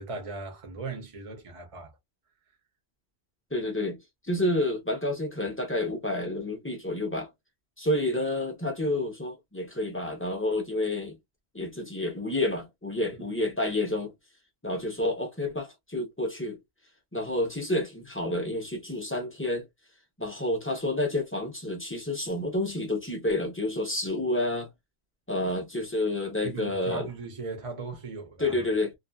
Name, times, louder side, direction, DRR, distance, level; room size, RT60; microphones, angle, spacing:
voice 1, 0.0-1.9 26.4-28.6, right 4 dB, 35° right, 0.9 m, -38 dB
voice 2, 3.5-7.3 7.8-11.2 11.5-14.1 14.6-16.6 17.1-19.7 20.2-24.7 25.3-27.1 28.4-28.9, left 1 dB, 15° left, 0.8 m, -29 dB
2.7 x 2.4 x 2.3 m
omnidirectional pair, 1.1 m